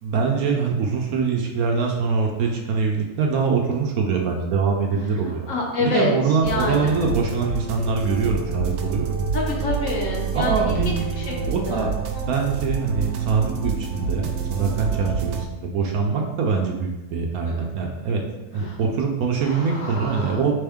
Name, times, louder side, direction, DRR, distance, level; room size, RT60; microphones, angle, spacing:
voice 1, 0.0-9.2 10.3-10.9 11.5-11.9 12.2-18.2 18.5-20.5, right 5 dB, 70° right, 1 dB, 1.0 m, -24 dB
voice 2, 5.5-6.1 6.4-7.0 9.3-11.9 12.1-12.2 17.4-17.7 18.6-18.8 19.4-20.5, left 3 dB, 60° left, -1 dB, 1.0 m, -28 dB
sound 1, 6.4-15.4, right 6 dB, 90° right, 1.2 m, -27 dB
4.5 x 3.4 x 3.5 m, 1.0 s
omnidirectional pair, 1.8 m